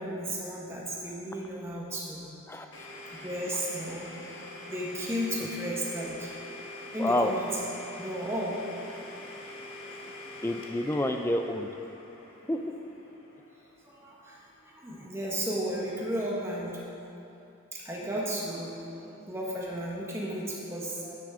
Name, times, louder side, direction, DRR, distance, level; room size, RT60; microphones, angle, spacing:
voice 1, 0.0-2.3 3.2-4.1 4.7-6.3 6.9-7.5 8.0-8.6 9.8-9.9 13.8-17.0 17.7-21.2, equal, 10° right, -4 dB, 1.4 m, -34 dB
voice 2, 2.5-2.8 7.0-7.3 10.4-11.7 12.5-12.6, left 1 dB, 10° left, 5 dB, 0.4 m, -28 dB
Domestic sounds home sounds, 2.7-14.4, left 1 dB, 60° left, 1.3 m, -45 dB
10.5 x 9.8 x 3.8 m, 2.8 s
head